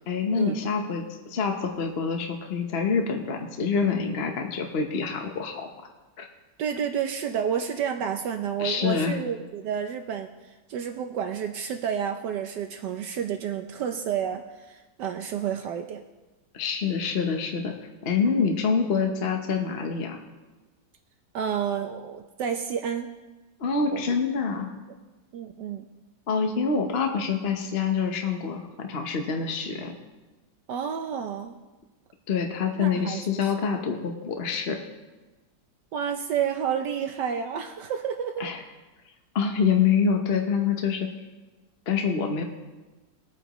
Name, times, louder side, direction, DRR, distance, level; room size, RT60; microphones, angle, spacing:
voice 1, 0.1-5.9 6.2-6.3 8.6-9.2 16.5-17.7 18.0-20.2 23.6-24.7 26.3-29.9 32.3-34.8 38.4-38.6 39.3-41.1 41.9-42.4, left 5 dB, 40° left, 3 dB, 1.0 m, -26 dB
voice 2, 6.6-16.0 18.4-18.5 21.3-23.1 23.9-24.2 25.3-25.8 30.7-31.5 32.8-33.5 35.9-38.5, right 8 dB, 75° right, 5 dB, 1.3 m, -30 dB
21.0 x 8.9 x 3.1 m, 1.2 s
omnidirectional pair, 1.9 m